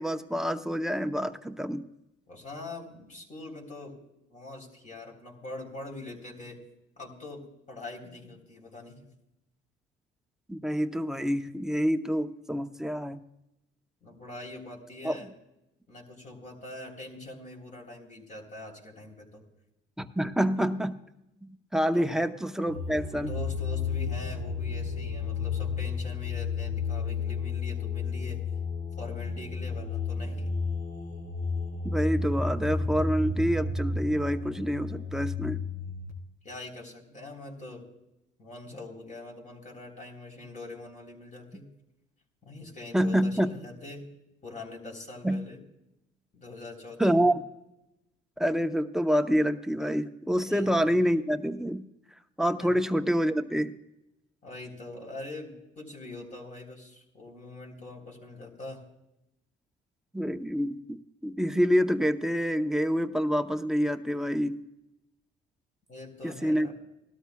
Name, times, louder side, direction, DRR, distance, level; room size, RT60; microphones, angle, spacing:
voice 1, 0.0-1.8 10.5-13.2 15.0-15.2 20.0-21.0 21.4-23.3 31.8-35.6 42.9-43.5 45.2-45.4 47.0-47.4 48.4-51.9 52.4-53.7 60.1-64.6 66.2-66.7, equal, ahead, 7 dB, 0.8 m, -27 dB
voice 2, 2.3-4.0 4.3-6.6 7.0-9.1 14.0-15.3 15.9-19.4 21.9-22.2 23.1-28.4 29.0-30.5 36.4-37.9 38.4-41.7 42.4-44.1 44.4-45.6 46.3-47.3 50.4-50.7 52.6-52.7 54.4-58.9 65.9-66.7, left 2 dB, 40° left, 1 dB, 3.8 m, -43 dB
sound 1, 22.7-36.1, left 4 dB, 75° left, 3.5 m, -32 dB
19.0 x 13.0 x 2.3 m, 0.88 s
cardioid pair, 90°, 20 cm